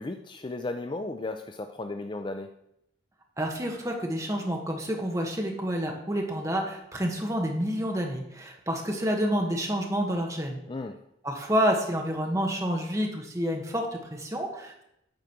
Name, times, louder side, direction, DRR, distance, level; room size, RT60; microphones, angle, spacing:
voice 1, 0.0-2.5 10.7-11.0, left 2 dB, 25° left, 7 dB, 0.4 m, -35 dB
voice 2, 3.4-10.6 11.2-14.8, equal, 15° right, 1 dB, 1.3 m, -29 dB
8.8 x 4.8 x 5.9 m, 0.79 s
head